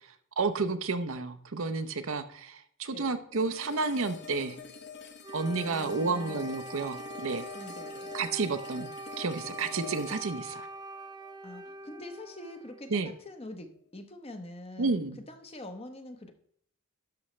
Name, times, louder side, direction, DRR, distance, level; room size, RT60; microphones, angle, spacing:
voice 1, 0.4-4.6 5.3-7.4 8.1-8.9 9.2-10.7 12.9-13.1 14.8-15.2, right 4 dB, 65° right, 10 dB, 0.7 m, -31 dB
sound 1, 3.3-12.4, left 5 dB, 50° left, 1.1 m, -46 dB
Wind instrument woodwind instrument, 5.2-13.0, right 1 dB, 20° right, 0.3 m, -43 dB
voice 2, 5.6-6.5 7.5-8.1 11.4-15.0 15.3-16.3, left 1 dB, 25° left, 7 dB, 0.9 m, -45 dB
11.5 x 6.2 x 3.2 m, 0.66 s
head